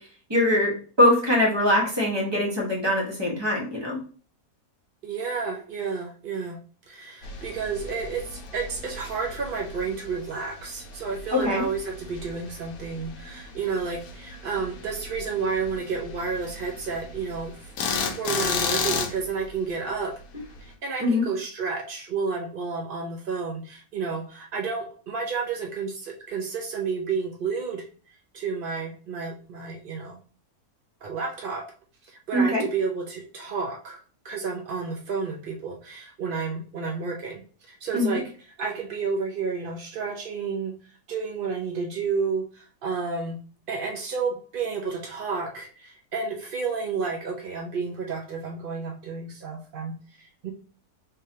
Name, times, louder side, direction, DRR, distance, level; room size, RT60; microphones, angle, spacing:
voice 1, 0.3-4.0 11.3-11.6 21.0-21.2 32.3-32.6 37.9-38.2, left 1 dB, 20° right, -3 dB, 1.2 m, -22 dB
voice 2, 5.0-6.6 6.9-17.7 18.0-20.2 20.6-27.9 28.3-30.2 31.0-31.7 32.0-34.0 34.2-37.4 37.7-38.3 38.6-40.7 41.1-43.4 43.7-50.5, right 5 dB, 80° right, 1 dB, 0.4 m, -31 dB
sound 1, 7.2-20.7, left 5 dB, 70° left, 1.1 m, -35 dB
3.8 x 3.2 x 2.7 m, 0.41 s
omnidirectional pair, 1.7 m